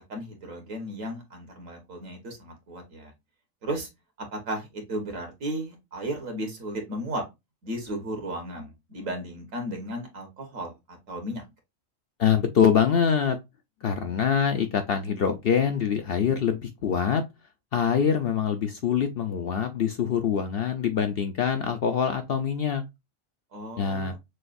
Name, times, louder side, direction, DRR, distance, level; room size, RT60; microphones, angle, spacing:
voice 1, 0.1-3.1 3.6-3.9 4.3-7.2 7.6-11.5 23.5-24.2, right 1 dB, 70° right, 1.8 m, -35 dB
voice 2, 12.2-13.4 13.8-17.2 17.7-22.8 23.8-24.2, left 7 dB, 60° left, 0.6 m, -24 dB
6.3 x 2.3 x 2.5 m
omnidirectional pair, 1.4 m